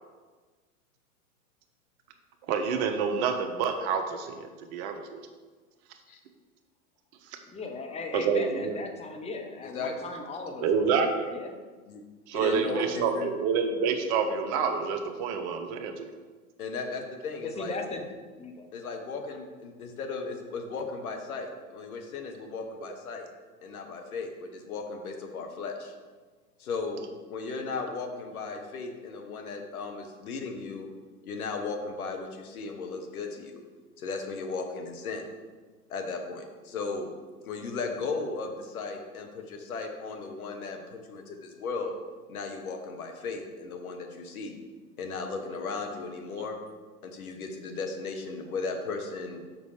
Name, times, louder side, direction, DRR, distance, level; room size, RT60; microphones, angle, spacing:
voice 1, 2.5-5.0 8.1-8.8 10.6-11.3 12.3-16.1, right 6 dB, 50° right, 6 dB, 1.0 m, -28 dB
voice 2, 7.5-11.5 12.6-13.1 17.4-18.7, left 3 dB, 15° left, 3 dB, 0.9 m, -38 dB
voice 3, 9.6-10.0 11.9-12.0 12.3-13.3 16.6-17.8 18.7-23.3 23.6-25.9 26.6-27.0 27.3-30.9 31.2-33.6 34.0-35.2 35.9-37.1 37.4-41.9 42.3-44.6 45.0-46.6 47.0-49.4, left 4 dB, 75° left, 4 dB, 1.3 m, -36 dB
6.5 x 5.4 x 4.9 m, 1.4 s
figure-of-eight pair, 90°, 44 cm